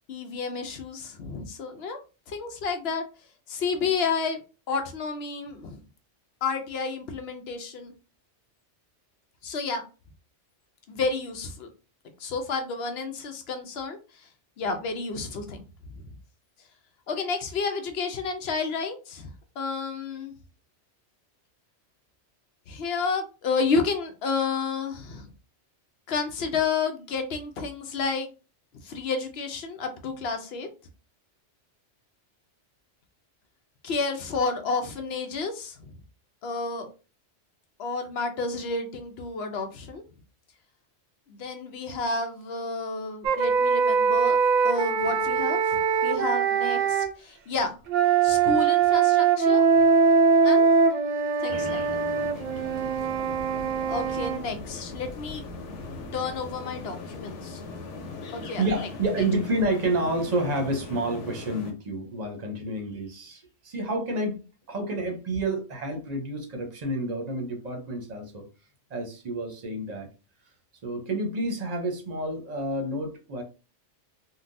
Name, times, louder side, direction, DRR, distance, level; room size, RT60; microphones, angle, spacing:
voice 1, 0.1-2.0 2.3-3.0 3.5-4.4 4.7-5.8 6.4-7.9 9.4-9.8 10.9-11.7 12.2-14.3 14.6-15.6 15.9-16.1 17.1-19.3 19.6-20.3 22.7-25.3 26.1-28.3 28.8-30.7 33.8-35.9 36.4-36.9 37.8-40.0 41.3-45.8 46.0-47.8 48.2-49.6 50.4-50.7 51.4-51.9 53.9-55.4 55.9-57.6 58.3-58.9, left 4 dB, 65° left, 6 dB, 0.8 m, -30 dB
sound 1, 43.2-47.1 47.9-54.4, right 5 dB, 60° right, 0.5 m, -22 dB
sound 2, 51.5-61.7, left 3 dB, 90° left, 1.0 m, -39 dB
voice 2, 58.6-64.4 64.7-68.4 68.9-70.1 70.8-73.4, right 1 dB, 40° right, 4 dB, 0.8 m, -29 dB
3.6 x 2.2 x 2.5 m, 0.32 s
omnidirectional pair, 1.2 m